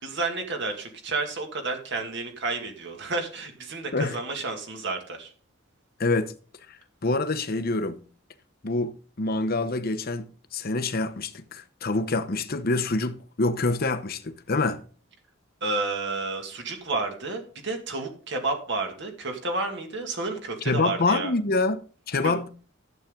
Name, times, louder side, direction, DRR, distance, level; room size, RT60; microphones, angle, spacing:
voice 1, 0.0-5.3 15.6-21.3 22.2-22.3, right 3 dB, 60° right, 2.2 m, -31 dB
voice 2, 6.0-6.3 7.0-8.0 8.6-14.8 20.6-21.8 22.1-22.5, left 3 dB, 50° left, 0.9 m, -26 dB
11.5 x 8.2 x 3.8 m
head